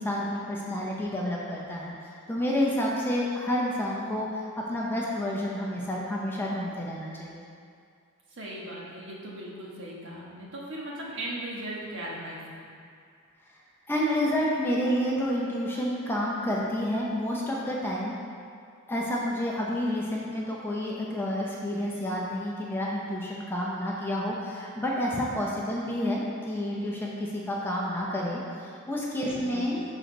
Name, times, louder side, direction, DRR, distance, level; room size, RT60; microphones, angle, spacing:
voice 1, 0.0-7.4 13.9-18.2 18.9-29.8, left 1 dB, 10° left, -4 dB, 0.6 m, -29 dB
voice 2, 8.3-12.7 29.2-29.8, right 1 dB, 60° right, -5 dB, 1.3 m, -38 dB
6.3 x 3.9 x 5.1 m, 2.3 s
head